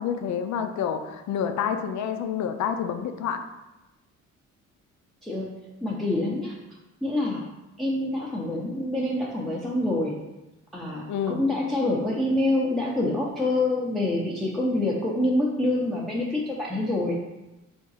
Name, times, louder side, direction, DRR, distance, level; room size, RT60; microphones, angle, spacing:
voice 1, 0.0-3.4 11.1-11.4, left 8 dB, 70° left, 7 dB, 0.5 m, -28 dB
voice 2, 5.2-6.6 7.0-7.5 7.8-10.2 10.7-17.2, left 1 dB, ahead, -5 dB, 0.6 m, -26 dB
3.7 x 2.6 x 4.0 m, 1.0 s
cardioid pair, 90°, 30 cm